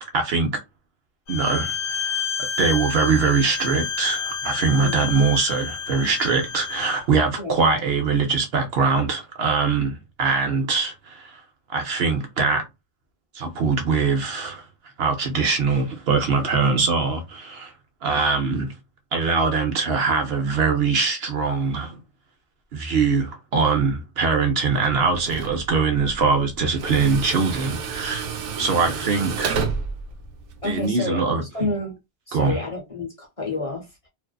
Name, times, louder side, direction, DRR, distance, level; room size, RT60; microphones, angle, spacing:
voice 1, 0.0-0.6 1.3-2.3 2.6-11.4 11.7-12.6 13.3-14.6 15.0-17.7 18.0-18.7 19.1-22.0 22.7-28.3 28.6-29.7 30.6-31.4 32.3-32.6, right 4 dB, 65° right, 0.8 m, -22 dB
Bowed string instrument, 1.3-7.0, left 7 dB, 80° left, 1.0 m, -29 dB
voice 2, 4.8-5.1 7.4-7.6 30.6-32.0 32.3-34.1, left 2 dB, 35° left, 0.8 m, -30 dB
Tools, 24.6-30.9, right 5 dB, 90° right, 0.9 m, -31 dB
2.5 x 2.3 x 2.2 m
omnidirectional pair, 1.2 m